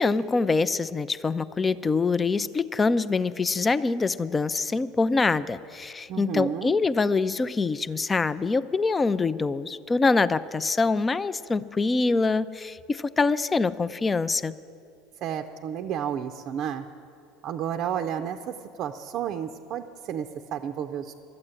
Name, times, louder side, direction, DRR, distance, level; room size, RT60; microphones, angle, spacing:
voice 1, 0.0-14.6, left 4 dB, 20° left, 15 dB, 0.5 m, -25 dB
voice 2, 6.1-6.7 15.2-16.8 17.4-21.1, right 9 dB, 50° right, 6 dB, 0.6 m, -31 dB
12.5 x 8.7 x 9.7 m, 2.5 s
figure-of-eight pair, 70°, 0 cm